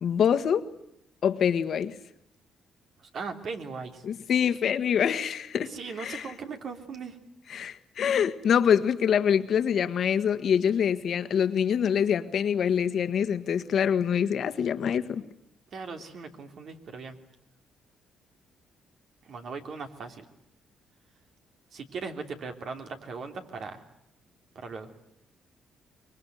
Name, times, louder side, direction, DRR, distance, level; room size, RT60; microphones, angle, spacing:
voice 1, 0.0-0.6 1.2-1.9 4.0-5.7 6.0-6.2 7.5-15.2, left 8 dB, 60° left, 1.5 m, -25 dB
voice 2, 3.0-4.0 5.6-7.2 15.7-17.2 19.2-20.3 21.7-23.8 24.5-24.9, right 4 dB, 60° right, 3.2 m, -38 dB
25.0 x 22.5 x 9.3 m
cardioid pair, 90°, 0 cm